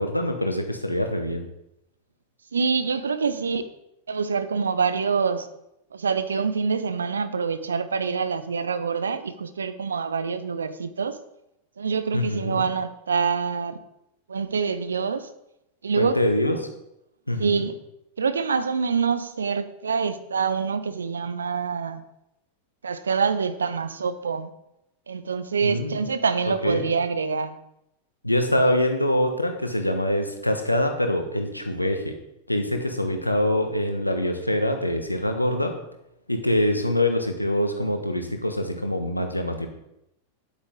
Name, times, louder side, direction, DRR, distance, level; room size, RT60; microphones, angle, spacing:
voice 1, 0.0-1.5 12.1-12.6 16.0-16.7 17.3-17.6 25.6-26.0 26.5-26.9 28.2-32.1 32.5-35.7 36.3-39.7, left 1 dB, 85° left, 5 dB, 1.2 m, -24 dB
voice 2, 2.5-3.6 4.1-5.5 5.9-11.2 11.8-13.8 14.3-15.3 15.8-16.2 17.4-17.8 18.2-22.0 22.8-24.5 25.1-27.6, right 5 dB, 70° right, 12 dB, 0.7 m, -26 dB
9.6 x 8.3 x 3.8 m, 0.84 s
figure-of-eight pair, 90°, 0 cm